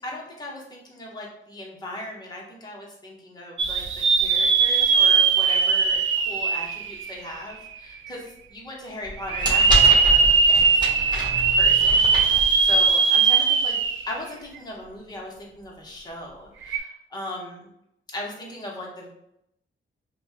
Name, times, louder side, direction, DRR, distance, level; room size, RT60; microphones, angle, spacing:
voice 1, 0.0-11.2 11.5-13.8 14.1-17.7 18.1-19.1, left 1 dB, 20° left, -3 dB, 1.1 m, -38 dB
sound 1, 3.6-7.5 8.1-8.2 9.2-14.2 14.6-14.7 16.6-16.8, right 5 dB, 75° right, 0.5 m, -19 dB
sound 2, 9.0-13.0, left 1 dB, 20° right, 1.3 m, -28 dB
5.4 x 2.3 x 2.9 m, 0.78 s
wide cardioid pair, 120°, 20 cm